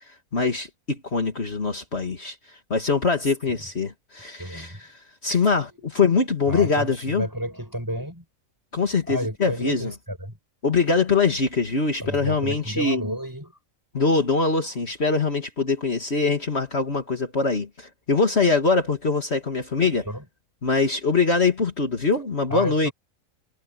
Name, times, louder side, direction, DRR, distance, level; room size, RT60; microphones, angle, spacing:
voice 1, 0.3-2.4 2.7-7.3 8.7-9.9 10.6-13.1 13.9-20.1 20.6-22.9, left 4 dB, 50° left, 2.4 m, -23 dB
voice 2, 4.4-4.8 5.3-5.4 6.5-8.2 9.1-10.3 12.0-13.5 19.8-20.2 22.5-22.9, equal, 15° right, 6.2 m, -31 dB
omnidirectional pair, 1.4 m